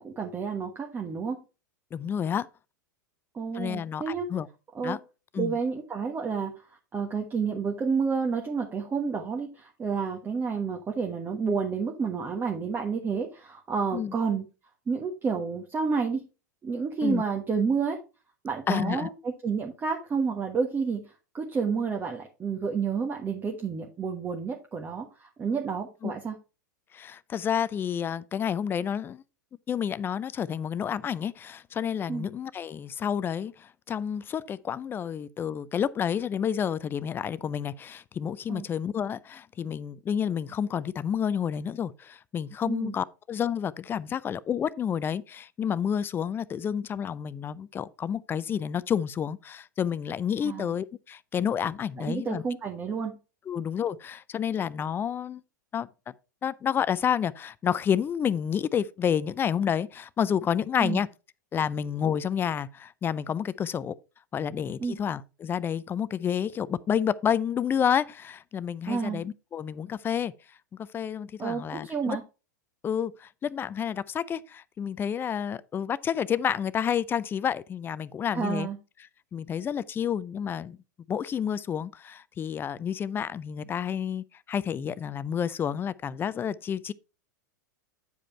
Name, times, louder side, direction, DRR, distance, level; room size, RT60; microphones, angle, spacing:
voice 1, 0.0-1.4 3.3-4.3 4.7-5.0 5.4-6.5 6.9-14.4 14.9-16.2 16.6-18.0 18.4-21.1 21.3-26.3 32.1-32.3 38.5-38.6 42.7-42.9 50.4-50.7 52.0-53.1 60.8-61.0 64.8-65.0 68.9-69.2 71.4-72.2 78.3-78.8, right 5 dB, 20° right, 1.4 m, -30 dB
voice 2, 1.9-2.5 3.5-4.5 4.8-5.0 5.3-5.5 13.9-14.1 17.0-17.2 18.7-19.1 26.0-26.1 26.9-29.2 29.7-52.4 53.5-55.4 55.7-55.9 56.4-61.1 61.5-63.9 64.3-70.3 70.7-72.2 72.8-78.7 79.3-80.8 81.1-86.9, left 8 dB, 20° left, 0.4 m, -29 dB
9.3 x 5.0 x 4.4 m
figure-of-eight pair, 95°, 10 cm